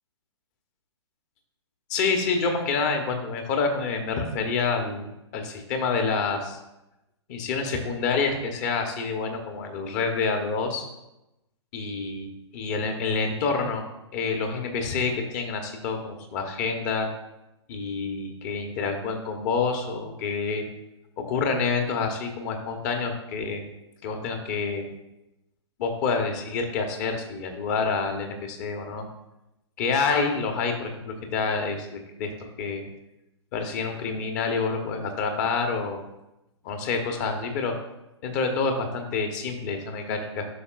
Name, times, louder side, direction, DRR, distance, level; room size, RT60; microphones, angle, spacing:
voice 1, 1.9-5.1 5.3-6.6 7.3-10.8 11.7-12.3 12.5-13.8 14.1-17.1 17.7-20.6 21.2-23.6 24.0-24.8 25.8-29.1 29.8-32.3 32.6-32.8 33.5-36.0 36.6-37.7 38.2-40.5, left 4 dB, 35° left, 4 dB, 1.1 m, -27 dB
9.7 x 5.8 x 2.5 m, 0.92 s
figure-of-eight pair, 120°, 15 cm